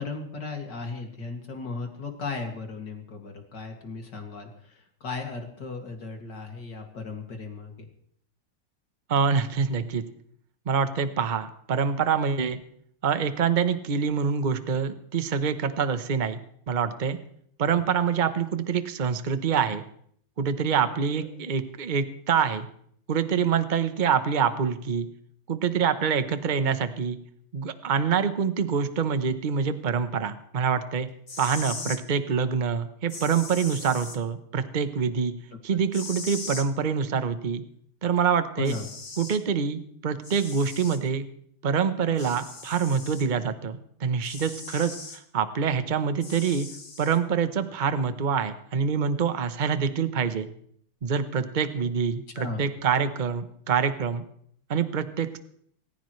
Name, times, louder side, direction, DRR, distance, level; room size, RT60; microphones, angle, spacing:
voice 1, 0.0-7.9 17.6-17.8 20.9-21.3 35.7-35.8 38.6-38.8 52.3-52.6, left 4 dB, 55° left, 2 dB, 3.0 m, -36 dB
voice 2, 9.1-10.0 10.7-12.6 13.0-16.4 16.7-17.2 17.6-19.8 20.4-22.7 23.1-25.1 25.5-27.2 27.5-31.1 31.4-35.3 35.6-37.6 38.0-38.8 39.2-41.3 41.6-46.7 47.0-50.5 51.0-54.2 54.7-55.4, right 6 dB, 40° right, 10 dB, 0.6 m, -26 dB
sound 1, 31.1-32.0 33.1-34.2 35.9-36.7 38.2-38.3 38.6-39.4 40.2-41.0 42.2-43.3 44.2-45.2 46.2-47.2, left 3 dB, 30° left, 1.6 m, -39 dB
27.5 x 15.0 x 3.3 m, 0.64 s
omnidirectional pair, 2.4 m